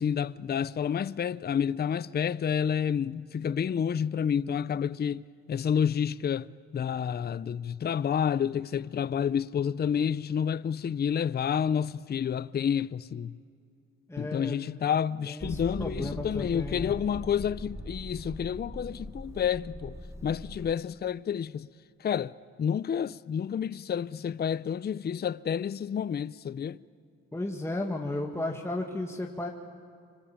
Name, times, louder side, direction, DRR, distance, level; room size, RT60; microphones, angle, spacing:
voice 1, 0.0-13.4 14.2-21.7 22.0-26.8, left 8 dB, 35° left, 0.6 m, -29 dB
voice 2, 14.1-14.6 15.2-16.9 27.3-29.5, left 2 dB, 10° left, 2.1 m, -34 dB
Motor vehicle (road), 15.4-20.7, right 1 dB, 10° right, 1.0 m, -41 dB
25.5 x 25.5 x 8.8 m
cardioid pair, 90°, 30 cm